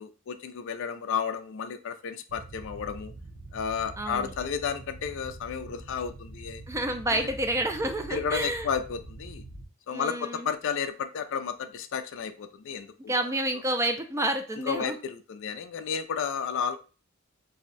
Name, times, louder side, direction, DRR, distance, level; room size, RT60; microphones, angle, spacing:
voice 1, 0.0-3.1 3.5-6.6 7.1-7.3 8.1-9.4 9.9-13.3 14.6-16.8, left 6 dB, 60° left, 9 dB, 0.4 m, -32 dB
sound 1, 2.3-9.7, right 2 dB, 55° right, 0.6 m, -44 dB
voice 2, 4.0-4.3 6.7-8.7 9.9-10.5 13.1-15.0, right 1 dB, 15° right, 6 dB, 0.4 m, -29 dB
2.7 x 2.1 x 3.9 m, 0.34 s
head